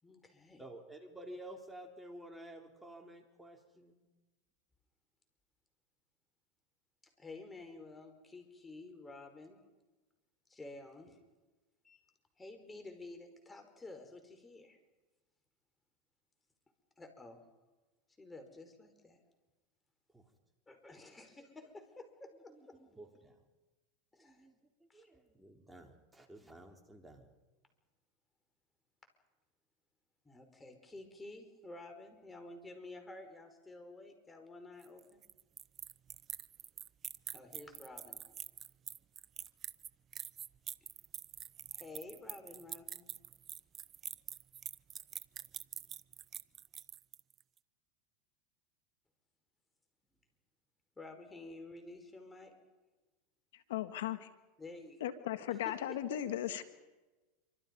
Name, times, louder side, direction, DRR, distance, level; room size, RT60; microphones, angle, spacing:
voice 1, 0.0-0.6 7.2-9.6 10.5-11.2 11.8-12.0 12.4-14.8 17.0-17.4 18.2-19.2 20.7-22.8 24.1-24.5 24.9-25.1 30.2-35.2 37.3-38.2 41.7-43.1 51.0-52.5 54.6-55.0 55.5-56.2, left 2 dB, 15° left, 6 dB, 5.1 m, -51 dB
voice 2, 0.6-4.0 20.1-20.2 22.5-23.3 24.2-24.6 24.9-27.3, right 1 dB, 5° right, 3 dB, 3.9 m, -52 dB
sound 1, 34.8-47.4, right 9 dB, 30° right, 0.7 m, -45 dB
voice 3, 53.5-54.3 55.0-56.6, left 12 dB, 80° left, 10 dB, 1.6 m, -37 dB
27.0 x 25.5 x 5.5 m, 1.1 s
hypercardioid pair, 115°, 0 cm